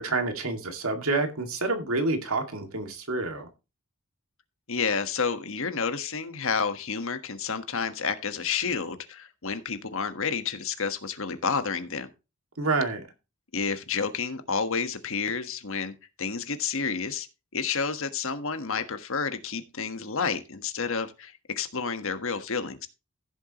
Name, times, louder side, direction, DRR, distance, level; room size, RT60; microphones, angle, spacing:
voice 1, 0.0-3.5 12.6-13.0, right 3 dB, 75° right, 2.3 m, -28 dB
voice 2, 4.7-12.1 13.5-17.3 17.5-22.9, left 5 dB, 65° left, 1.5 m, -30 dB
15.5 x 7.2 x 3.0 m
head